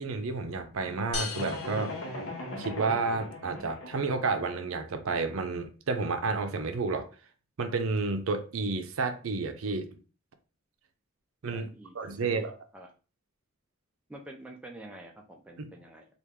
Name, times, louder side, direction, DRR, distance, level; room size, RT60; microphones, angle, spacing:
voice 1, 0.0-1.9 2.6-7.1 7.6-9.9 11.4-11.7 11.9-12.5 15.6-15.7, right 4 dB, 75° right, 0.5 m, -31 dB
sound 1, 1.1-3.0, left 5 dB, 90° left, 0.9 m, -39 dB
sound 2, 1.3-4.2, left 1 dB, 60° left, 0.7 m, -39 dB
voice 2, 11.5-12.9 14.1-16.1, right 1 dB, 5° right, 0.4 m, -48 dB
3.0 x 2.4 x 3.5 m
head